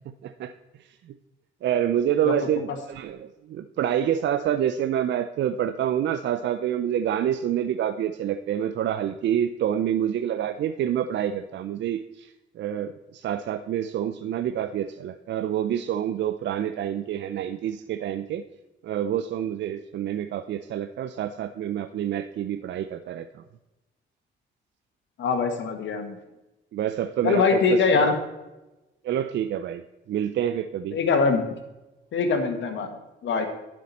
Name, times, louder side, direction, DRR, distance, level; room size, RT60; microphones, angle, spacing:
voice 1, 1.6-12.3 12.6-18.4 18.8-23.4 26.7-27.8 29.0-29.8 30.1-31.0, right 10 dB, 65° right, 9 dB, 0.5 m, -27 dB
voice 2, 25.2-26.2 27.2-28.1 30.9-31.4 32.1-32.9 33.2-33.5, left 4 dB, 70° left, 6 dB, 1.7 m, -22 dB
11.0 x 7.6 x 4.2 m, 1.0 s
cardioid pair, 90°, 20 cm